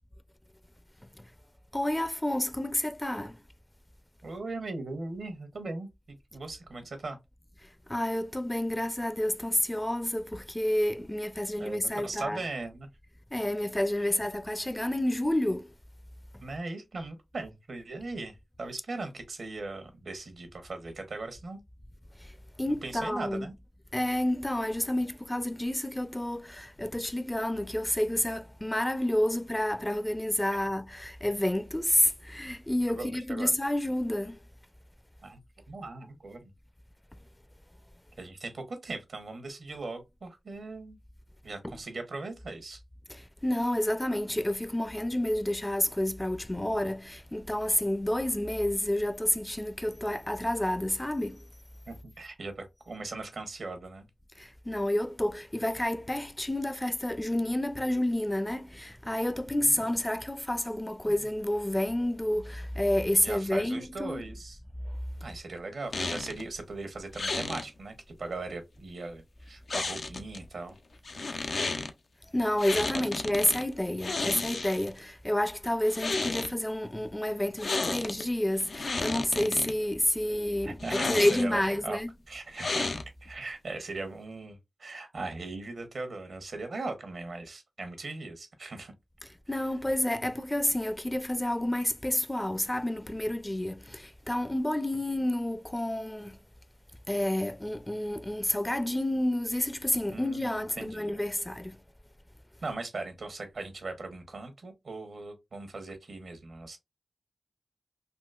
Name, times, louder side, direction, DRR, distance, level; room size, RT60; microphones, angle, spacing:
voice 1, 1.7-3.4 7.9-12.4 13.3-15.7 22.2-23.5 23.9-34.4 41.6-41.7 43.1-51.5 54.4-64.2 72.3-82.1 89.2-96.4 97.1-101.8, left 1 dB, 15° left, 0.4 m, -29 dB
voice 2, 4.2-7.2 11.6-12.9 14.0-14.1 16.4-21.6 22.7-23.5 30.5-30.6 32.9-33.5 35.2-35.4 35.7-36.5 38.2-41.0 41.4-42.8 51.9-54.1 61.1-61.2 63.2-64.6 65.2-70.8 72.9-73.0 80.6-82.0 82.3-88.9 100.1-101.2 102.6-106.8, right 3 dB, 80° right, 0.9 m, -39 dB
sound 1, 65.9-66.4 67.1-67.7 69.7-70.4 71.0-71.9 72.6-73.6 74.0-75.0 75.8-76.5 77.6-78.2 78.6-79.7 80.8-81.6 82.6-83.3, left 3 dB, 80° left, 0.4 m, -32 dB
3.7 x 2.4 x 2.3 m
cardioid pair, 40°, 0 cm